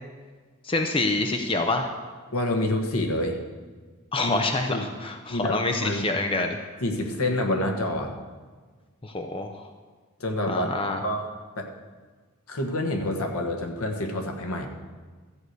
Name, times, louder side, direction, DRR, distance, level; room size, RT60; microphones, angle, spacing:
voice 1, 0.6-1.9 4.1-6.6 9.0-9.6 10.5-11.0, left 2 dB, 25° left, 5 dB, 0.6 m, -26 dB
voice 2, 2.3-3.4 4.2-4.4 4.7-4.9 5.3-6.1 6.8-8.1 10.2-10.7 11.0-11.3 11.5-11.7 12.5-14.7, left 1 dB, 80° left, 3 dB, 1.3 m, -27 dB
13.0 x 4.8 x 8.0 m, 1.5 s
head